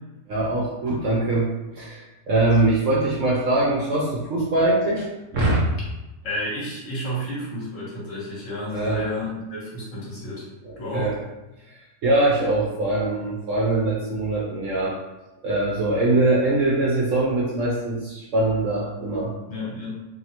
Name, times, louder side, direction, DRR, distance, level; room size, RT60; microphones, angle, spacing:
voice 1, 0.3-1.5 1.7-5.6 8.7-9.0 10.6-11.1 11.7-15.0 15.4-19.3, right 2 dB, 65° right, -5 dB, 0.8 m, -22 dB
voice 2, 6.2-10.5 10.8-11.1 19.5-20.0, equal, 55° left, -6 dB, 1.2 m, -31 dB
3.1 x 2.8 x 2.8 m, 1.0 s
omnidirectional pair, 1.8 m